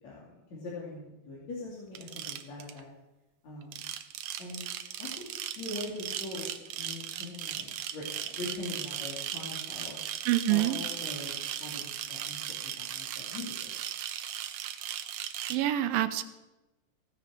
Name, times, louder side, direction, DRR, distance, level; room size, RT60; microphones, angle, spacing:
voice 1, 0.0-2.9 3.4-3.8 4.4-4.6 5.0-5.3 5.6-6.5 6.8-10.0 10.5-12.4 12.6-13.7, left 2 dB, 55° left, -6 dB, 3.8 m, -42 dB
sound 1, 1.9-2.8 3.6-15.6, right 11 dB, 70° right, 2.1 m, -37 dB
voice 2, 10.3-10.8 15.5-16.2, right 14 dB, 90° right, 11 dB, 2.5 m, -26 dB
16.5 x 9.9 x 6.7 m, 1.1 s
omnidirectional pair, 4.1 m